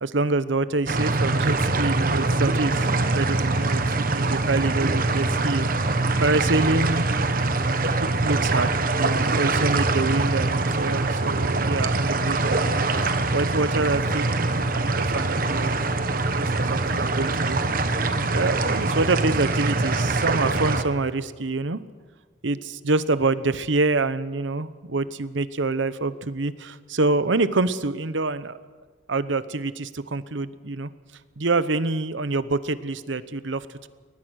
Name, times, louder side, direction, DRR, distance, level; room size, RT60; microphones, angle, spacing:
voice 1, 0.0-5.7 6.2-7.2 8.0-15.7 16.0-17.6 18.3-21.8 22.4-28.6 29.1-30.9 31.4-33.9, right 3 dB, 85° right, 14 dB, 0.9 m, -26 dB
sound 1, 0.9-20.8, right 3 dB, 50° right, 1.3 m, -23 dB
21.5 x 20.0 x 6.5 m, 1.4 s
head